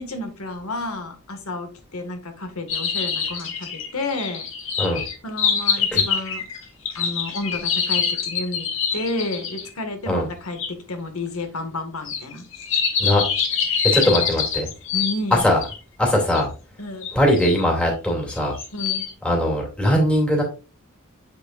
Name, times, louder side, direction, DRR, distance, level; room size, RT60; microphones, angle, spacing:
voice 1, 0.0-4.4 5.2-6.4 6.9-8.7 8.9-10.6 10.9-12.4 14.1-14.2 14.9-15.4 16.8-17.1 18.7-19.0, left 2 dB, 85° left, 7 dB, 1.7 m, -31 dB
sound 1, 2.7-9.7 10.6-10.7 12.1-15.8 16.3-16.4 17.0-17.6 18.3-19.1, left 6 dB, 60° left, 1.7 m, -25 dB
voice 2, 13.8-14.7 15.3-15.6 16.0-16.5 17.1-18.5 19.2-20.4, left 1 dB, 5° left, -2 dB, 2.3 m, -20 dB
7.9 x 6.8 x 2.4 m, 0.32 s
head